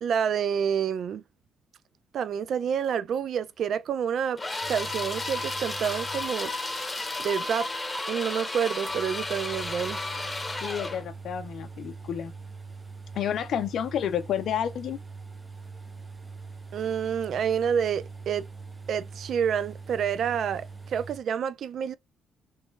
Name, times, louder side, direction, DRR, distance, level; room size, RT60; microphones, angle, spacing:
voice 1, 0.0-1.2 2.1-4.4 4.7-6.5 7.2-7.7 8.1-10.0 16.7-18.5 18.9-21.9, right 8 dB, 65° right, 0.4 m, -28 dB
sound 1, 4.4-11.1, left 2 dB, 20° left, 0.9 m, -33 dB
sound 2, 4.6-6.9 7.2-7.3 7.9-8.0 8.9-21.2, right 4 dB, 20° right, 0.7 m, -43 dB
voice 2, 10.6-12.3 13.1-15.0, left 9 dB, 70° left, 0.5 m, -30 dB
3.2 x 3.1 x 3.2 m
cardioid pair, 90°, 0 cm